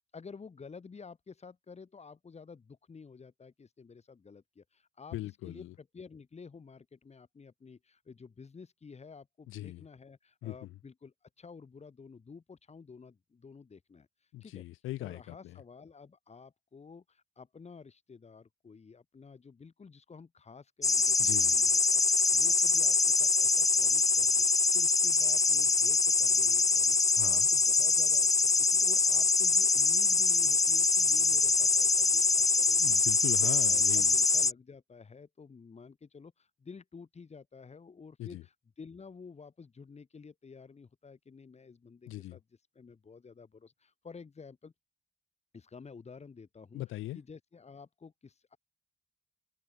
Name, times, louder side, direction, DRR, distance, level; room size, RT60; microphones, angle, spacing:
voice 1, 0.1-5.2 5.4-14.1 14.4-14.6 15.0-28.3 28.6-33.0 33.4-42.4 42.7-44.7 45.5-46.8 47.1-48.6, left 5 dB, 35° left, 3.2 m, -51 dB
voice 2, 5.1-5.7 9.5-9.8 10.4-10.6 14.3-15.6 21.2-21.5 27.1-27.5 32.8-34.1 38.2-38.4 42.1-42.4 46.7-47.2, left 16 dB, 90° left, 1.8 m, -39 dB
sound 1, 20.8-34.5, left 4 dB, 15° left, 0.5 m, -24 dB
cardioid pair, 90°, 20 cm